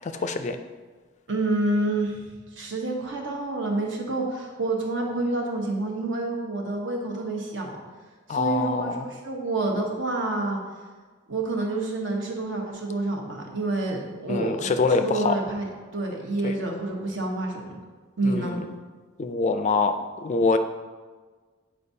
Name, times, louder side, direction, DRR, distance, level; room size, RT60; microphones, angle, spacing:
voice 1, 0.0-0.6 8.3-9.1 14.3-15.4 16.4-16.6 18.2-18.6 19.2-19.9 20.2-20.6, left 4 dB, 35° left, 8 dB, 0.4 m, -24 dB
voice 2, 1.3-2.2 2.5-7.8 8.3-10.6 11.3-17.8 18.2-18.6, right 2 dB, 70° right, 0 dB, 1.1 m, -28 dB
8.5 x 4.5 x 2.7 m, 1.4 s
head